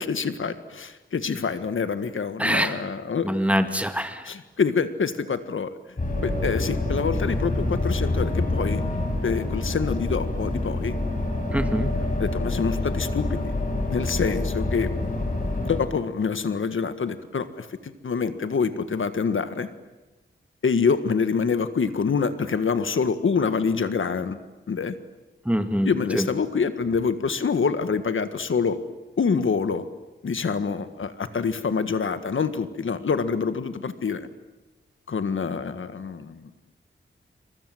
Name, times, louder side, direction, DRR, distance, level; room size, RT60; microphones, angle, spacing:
voice 1, 0.0-3.3 4.2-5.7 6.2-8.8 9.2-11.0 12.2-13.5 13.9-14.9 15.6-19.7 20.6-24.4 24.7-24.9 25.8-28.8 29.2-29.8 30.2-34.3 35.1-36.5, left 5 dB, 75° left, 11 dB, 1.6 m, -26 dB
voice 2, 2.4-2.7 3.2-4.2 11.5-11.9 25.5-26.3, equal, 5° right, 8 dB, 2.1 m, -24 dB
sound 1, 6.0-15.8, left 2 dB, 40° left, 7.6 m, -27 dB
27.5 x 25.5 x 7.9 m, 1.1 s
wide cardioid pair, 95°, 21 cm